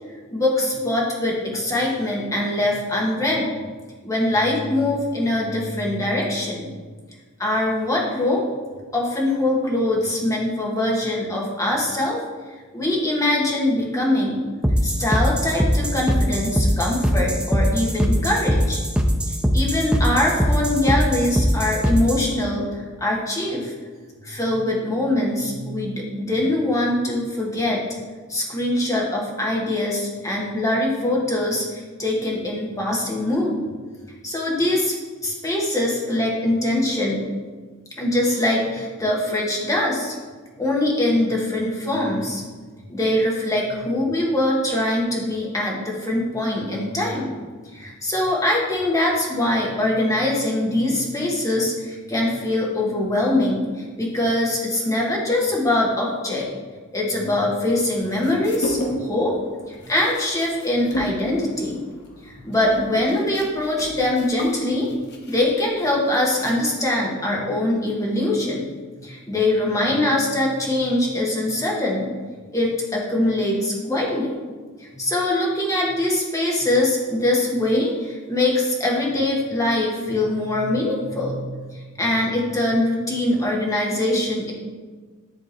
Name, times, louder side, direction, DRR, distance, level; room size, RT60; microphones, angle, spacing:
voice 1, 0.3-3.5 4.0-6.7 7.4-8.4 8.9-12.2 12.7-14.4 14.8-18.8 19.5-23.7 24.2-27.8 28.3-33.5 34.2-35.0 35.2-37.2 38.0-40.1 40.6-42.4 42.9-47.3 47.7-56.4 56.9-59.4 59.7-61.8 62.2-64.9 65.3-68.7 69.0-72.1 72.5-74.4 74.8-84.5, left 1 dB, 15° left, -3 dB, 1.3 m, -23 dB
sound 1, 14.6-22.3, equal, 5° right, 0.4 m, -21 dB
sound 2, 58.0-59.2 59.5-66.9, equal, 50° left, 1.0 m, -33 dB
10.5 x 3.7 x 3.0 m, 1.4 s
head